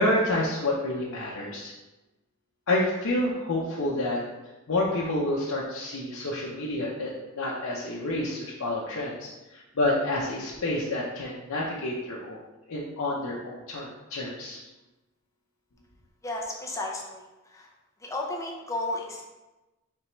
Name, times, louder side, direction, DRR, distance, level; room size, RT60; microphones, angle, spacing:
voice 1, 0.0-1.7 2.7-4.2 4.7-12.4 12.7-14.7, left 1 dB, 80° left, -5 dB, 0.7 m, -29 dB
voice 2, 16.2-17.7 18.0-19.2, left 2 dB, 15° left, -1 dB, 0.6 m, -33 dB
4.5 x 3.3 x 3.1 m, 1.1 s
head